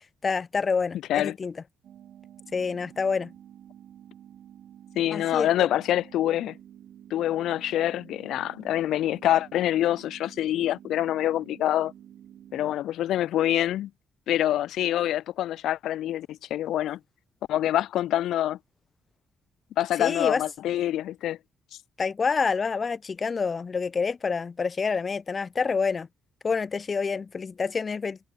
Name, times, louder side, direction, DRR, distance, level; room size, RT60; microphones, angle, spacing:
voice 1, 0.0-1.5 2.5-3.3 5.1-5.7 20.0-20.4 22.0-26.1 26.4-28.2, left 5 dB, 35° left, 0.7 m, -27 dB
sound 1, 1.8-12.7, right 10 dB, 70° right, 6.8 m, -50 dB
voice 2, 4.9-6.5 7.1-11.9 12.5-13.9 14.3-17.0 17.5-18.6 19.8-21.4, left 12 dB, 80° left, 0.8 m, -26 dB
cardioid pair, 90°, 0 cm